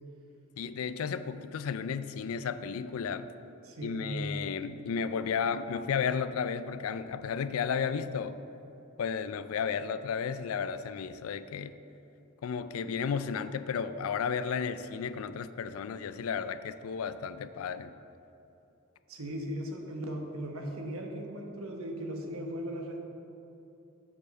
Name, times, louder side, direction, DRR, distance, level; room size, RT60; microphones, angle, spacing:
voice 1, 0.6-3.3 3.8-8.4 9.0-11.8 12.4-17.9, left 6 dB, 85° left, 12 dB, 0.4 m, -33 dB
voice 2, 3.6-4.2 19.1-23.0, right 1 dB, 85° right, 2 dB, 1.1 m, -38 dB
7.3 x 4.9 x 6.3 m, 2.9 s
head